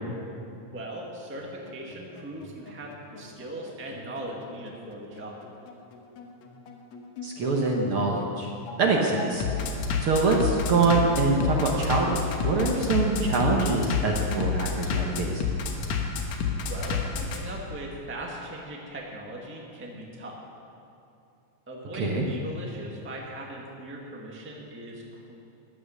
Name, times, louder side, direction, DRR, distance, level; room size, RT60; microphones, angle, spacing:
voice 1, 0.7-5.4 16.6-20.4 21.7-25.3, right 1 dB, 5° right, -2 dB, 1.0 m, -39 dB
Bass drum, 1.4-17.4, left 5 dB, 70° left, 2.4 m, -30 dB
voice 2, 7.2-8.5 8.8-9.4 10.0-15.4 21.9-22.2, right 3 dB, 55° right, 0 dB, 1.7 m, -24 dB
15.5 x 11.0 x 6.4 m, 2.7 s
omnidirectional pair, 3.5 m